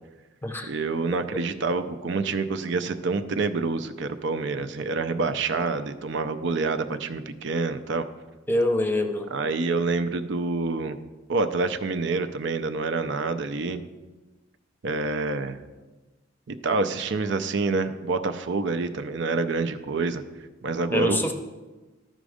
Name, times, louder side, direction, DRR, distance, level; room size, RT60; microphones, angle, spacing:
voice 1, 0.7-8.1 9.3-11.0 11.3-13.8 14.8-15.6 16.5-20.2 20.6-21.3, right 3 dB, 65° right, 9 dB, 0.5 m, -27 dB
voice 2, 8.5-9.3 20.9-21.3, left 1 dB, 10° left, 5 dB, 0.7 m, -24 dB
12.5 x 5.2 x 5.0 m, 1.2 s
head